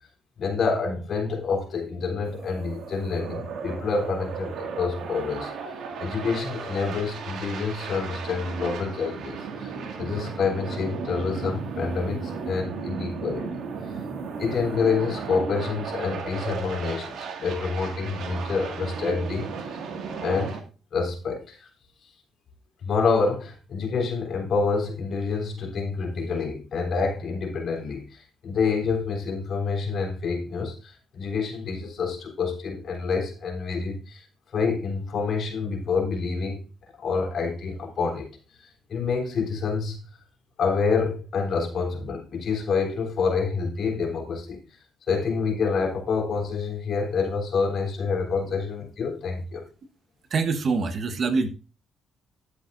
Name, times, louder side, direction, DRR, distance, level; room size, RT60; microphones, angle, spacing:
voice 1, 0.4-5.5 6.0-13.6 14.4-19.5 20.2-20.6 20.9-21.7 22.8-34.2 34.5-36.6 37.0-38.3 38.9-40.0 40.6-44.6 45.1-49.6, left 4 dB, 60° left, 3.4 m, -27 dB
sound 1, 2.2-20.6, right 5 dB, 75° right, 2.1 m, -35 dB
voice 2, 50.3-51.5, right 4 dB, 50° right, 1.3 m, -24 dB
12.5 x 8.3 x 2.6 m
cardioid pair, 90°, 0 cm